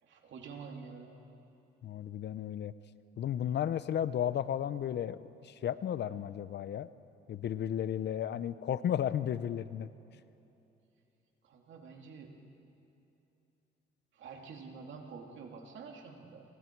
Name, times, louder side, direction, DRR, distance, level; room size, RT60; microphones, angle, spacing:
voice 1, 0.0-1.2 11.4-12.3 14.1-16.4, right 5 dB, 70° right, 2 dB, 2.7 m, -48 dB
voice 2, 1.8-2.7 3.2-6.9 7.3-9.9, left 10 dB, 60° left, 15 dB, 0.7 m, -34 dB
28.0 x 25.0 x 4.6 m, 2.8 s
cardioid pair, 90°, 20 cm